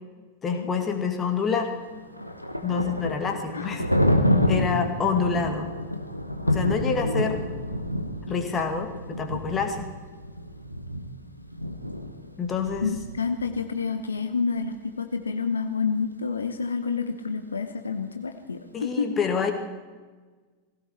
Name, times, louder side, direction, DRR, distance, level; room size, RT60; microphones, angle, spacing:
voice 1, 0.4-1.7 2.6-3.8 4.5-5.7 6.5-7.4 8.3-9.9 12.4-12.9 18.7-19.5, left 6 dB, 20° left, 4 dB, 2.2 m, -27 dB
Thunder, 1.7-13.5, left 1 dB, 90° left, 1.3 m, -28 dB
voice 2, 12.8-19.2, left 5 dB, 75° left, 7 dB, 1.0 m, -29 dB
19.0 x 16.5 x 4.5 m, 1.4 s
figure-of-eight pair, 90°, 0 cm